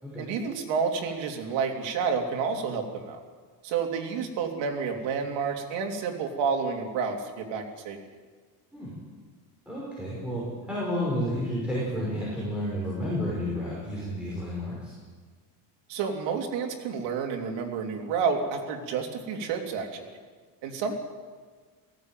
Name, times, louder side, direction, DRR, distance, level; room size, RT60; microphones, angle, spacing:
voice 1, 0.2-3.2 3.6-8.0 15.9-20.0 20.6-21.0, right 5 dB, 70° right, 2 dB, 3.3 m, -30 dB
voice 2, 9.7-14.9, equal, ahead, -7 dB, 5.7 m, -31 dB
18.0 x 16.0 x 9.2 m, 1.5 s
cardioid pair, 160°, 45 cm